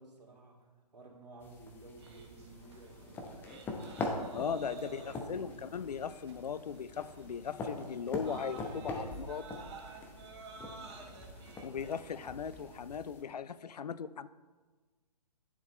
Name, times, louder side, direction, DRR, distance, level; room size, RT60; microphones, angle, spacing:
voice 1, 0.0-3.4 4.3-5.7 11.8-12.1, right 2 dB, 80° right, -2 dB, 2.4 m, -53 dB
sound 1, 1.4-13.2, left 2 dB, 10° left, 0.7 m, -43 dB
sound 2, 2.0-12.9, right 4 dB, 40° right, 1.1 m, -52 dB
voice 2, 4.3-9.6 11.6-14.3, left 7 dB, 75° left, 16 dB, 0.4 m, -38 dB
10.0 x 7.2 x 3.1 m, 1.3 s
figure-of-eight pair, 135°, 21 cm